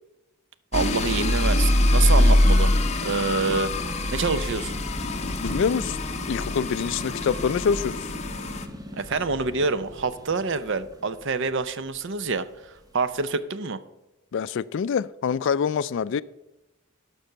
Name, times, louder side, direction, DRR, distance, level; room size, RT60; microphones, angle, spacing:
sound 1, 0.7-8.7, left 1 dB, 30° left, 0.8 m, -23 dB
voice 1, 0.7-2.8 3.0-3.7 4.1-4.8 9.0-12.5 12.9-13.8, right 4 dB, 55° right, 0.6 m, -26 dB
sound 2, 1.9-13.3, equal, 20° right, 1.1 m, -41 dB
voice 2, 5.4-6.0 6.3-8.0 14.3-16.2, left 6 dB, 55° left, 0.3 m, -25 dB
12.0 x 6.1 x 5.7 m
head